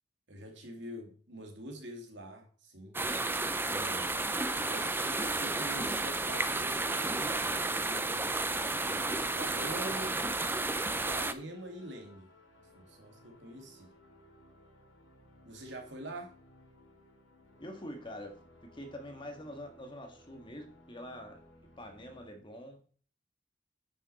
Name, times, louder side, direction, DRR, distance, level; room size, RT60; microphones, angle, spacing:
voice 1, 0.3-3.0 3.6-4.2 4.7-8.3 8.8-10.2 10.9-12.3 12.8-13.9 15.4-16.3, right 1 dB, 70° right, 2.6 m, -45 dB
sound 1, 2.9-11.3, right 2 dB, 10° right, 0.6 m, -32 dB
sound 2, 7.3-22.3, left 1 dB, 90° left, 2.6 m, -60 dB
voice 2, 17.6-18.4 18.7-21.4 21.8-22.8, equal, 25° left, 1.8 m, -45 dB
10.0 x 6.8 x 4.3 m
head